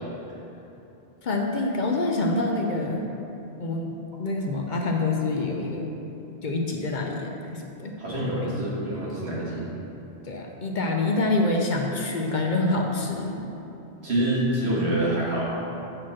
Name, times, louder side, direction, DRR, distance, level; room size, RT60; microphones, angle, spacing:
voice 1, 1.2-3.0 3.6-5.9 6.4-7.9 8.4-8.6 10.2-13.4, left 2 dB, 50° left, 1 dB, 0.6 m, -26 dB
voice 2, 8.0-9.7 14.0-15.4, right 1 dB, 60° right, -6 dB, 2.0 m, -26 dB
7.6 x 4.3 x 6.1 m, 2.9 s
omnidirectional pair, 1.2 m